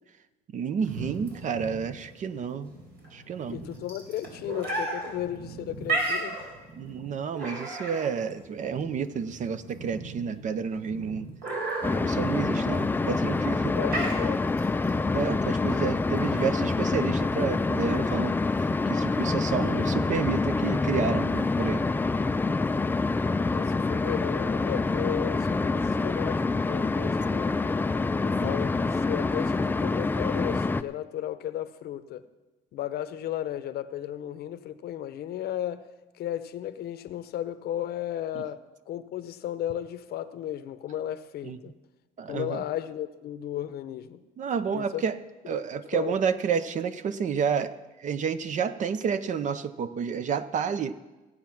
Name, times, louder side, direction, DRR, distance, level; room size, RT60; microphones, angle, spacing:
voice 1, 0.5-2.7 3.1-3.6 6.8-11.3 12.0-13.8 15.1-18.4 18.9-21.8 28.4-28.6 38.3-38.4 41.4-41.6 42.2-42.6 44.4-45.2 45.5-47.7 48.0-51.0, right 6 dB, 45° right, 13 dB, 0.7 m, -30 dB
sound 1, 0.8-16.7, right 2 dB, 70° right, 4.3 m, -35 dB
voice 2, 3.5-6.4 13.7-14.4 23.5-27.5 28.2-32.3 32.7-35.9 36.2-38.6 38.9-41.7 42.3-44.2 44.7-45.0 45.9-46.1, left 11 dB, 70° left, 12 dB, 0.8 m, -34 dB
sound 2, 11.8-30.8, left 3 dB, 10° left, 0.4 m, -26 dB
16.0 x 8.4 x 5.9 m, 1.2 s
cardioid pair, 110°, 17 cm